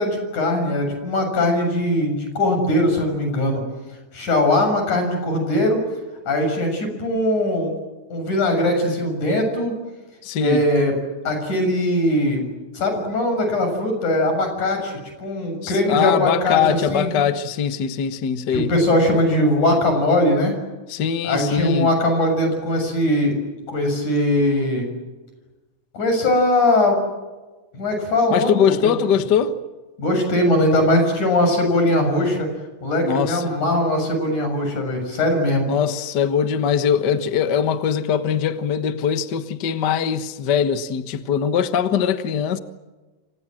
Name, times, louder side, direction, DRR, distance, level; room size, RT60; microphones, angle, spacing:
voice 1, 0.0-3.6 4.1-5.8 6.3-7.8 8.1-9.8 10.4-10.9 11.2-12.5 12.7-17.1 18.5-20.6 21.2-23.3 23.7-24.9 25.9-27.0 27.7-28.9 30.0-32.5 32.8-35.7, left 1 dB, 90° left, 8.3 m, -20 dB
voice 2, 10.2-10.6 15.6-18.7 20.9-21.9 28.3-29.5 33.0-33.6 35.7-42.6, left 7 dB, 45° left, 1.5 m, -21 dB
29.5 x 25.0 x 7.7 m
omnidirectional pair, 3.4 m